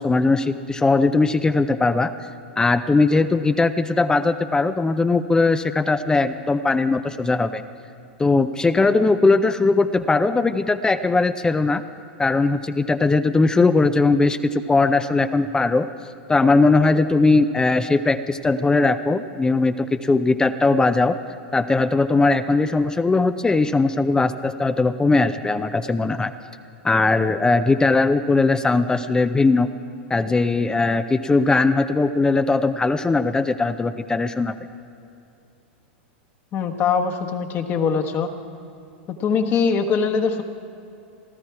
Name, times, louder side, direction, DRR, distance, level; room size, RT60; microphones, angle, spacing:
voice 1, 0.0-2.1 2.6-7.6 8.2-11.8 12.2-15.9 16.3-21.2 21.5-26.3 26.8-29.7 30.1-34.6, left 3 dB, 10° left, 11 dB, 0.5 m, -19 dB
voice 2, 36.5-38.3 39.1-40.4, left 5 dB, 35° left, 5 dB, 1.2 m, -22 dB
17.5 x 12.5 x 4.8 m, 2.8 s
hypercardioid pair, 115°, 6 cm